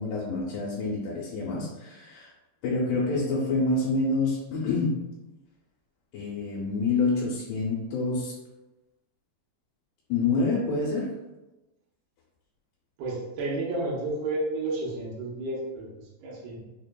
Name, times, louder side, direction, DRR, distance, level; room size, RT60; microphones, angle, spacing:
voice 1, 0.0-2.3 2.6-5.0 6.1-8.3 10.1-11.1, left 3 dB, 80° left, -6 dB, 2.7 m, -27 dB
voice 2, 13.0-16.6, right 2 dB, 75° right, -4 dB, 2.8 m, -31 dB
6.4 x 2.5 x 2.2 m, 1.0 s
omnidirectional pair, 4.7 m